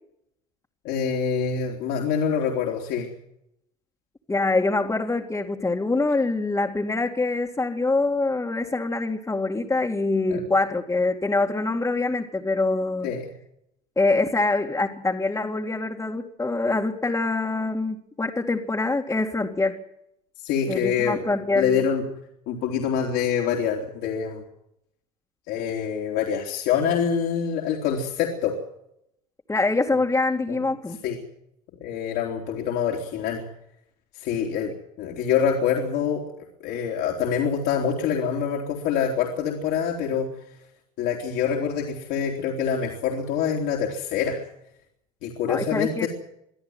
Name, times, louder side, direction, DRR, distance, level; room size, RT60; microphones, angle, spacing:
voice 1, 0.8-3.1 10.3-10.4 13.0-13.3 20.4-21.2 21.6-22.0 22.5-24.4 25.5-28.6 30.5-30.6 31.0-31.2 31.8-33.4 34.2-34.7 35.0-36.2 36.6-40.3 41.0-44.4 45.2-46.1, left 7 dB, 65° left, 0 dB, 3.6 m, -25 dB
voice 2, 4.3-13.1 14.0-19.8 20.7-21.7 29.5-31.0 45.5-46.1, left 3 dB, 15° left, -3 dB, 2.4 m, -24 dB
24.0 x 13.5 x 9.5 m, 0.77 s
hypercardioid pair, 75°, 19 cm